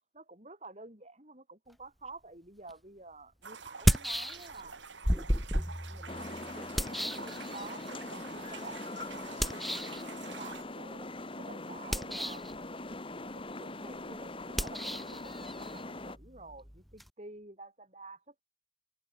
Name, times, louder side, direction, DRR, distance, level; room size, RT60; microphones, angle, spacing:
voice 1, 0.1-4.9 5.9-11.1 11.4-12.5 13.3-18.4, right 3 dB, 35° right, 7.5 m, -50 dB
sound 1, 2.7-2.8 3.7-4.7 5.0-7.9 9.4-10.0 11.8-12.5 14.5-17.1, equal, ahead, 0.8 m, -33 dB
sound 2, 3.4-10.6, right 5 dB, 80° right, 3.4 m, -48 dB
sound 3, 6.1-16.2, left 2 dB, 30° left, 2.0 m, -42 dB
head